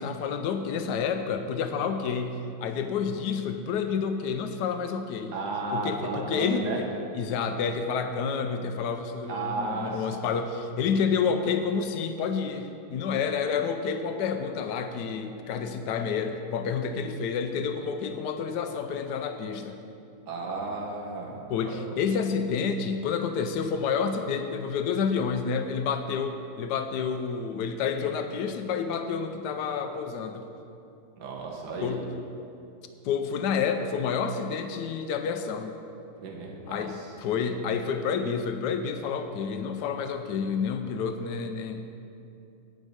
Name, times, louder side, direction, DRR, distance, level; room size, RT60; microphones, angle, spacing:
voice 1, 0.0-5.3 5.7-6.9 7.1-19.8 21.5-30.4 31.8-32.0 33.0-35.7 36.7-41.8, left 6 dB, 80° left, 7 dB, 1.2 m, -29 dB
voice 2, 5.3-6.8 9.3-10.1 20.3-21.4 21.7-21.8 31.2-32.0 36.2-37.1, right 3 dB, 75° right, -1 dB, 1.8 m, -33 dB
8.9 x 5.2 x 7.9 m, 2.7 s
omnidirectional pair, 1.8 m